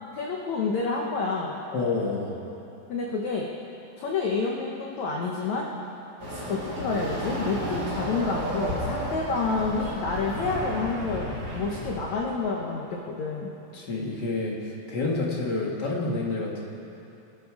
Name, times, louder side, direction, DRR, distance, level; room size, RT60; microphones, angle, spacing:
voice 1, 0.1-1.6 2.9-3.5 4.0-5.7 6.3-13.5, left 4 dB, 85° left, -1 dB, 1.6 m, -29 dB
voice 2, 1.7-2.4 13.7-14.6 14.9-16.6, left 3 dB, 55° left, -2 dB, 1.1 m, -28 dB
Chatter / Car passing by / Motorcycle, 6.2-12.1, right 1 dB, 25° right, 2.6 m, -32 dB
24.0 x 11.5 x 4.9 m, 2.9 s
omnidirectional pair, 5.0 m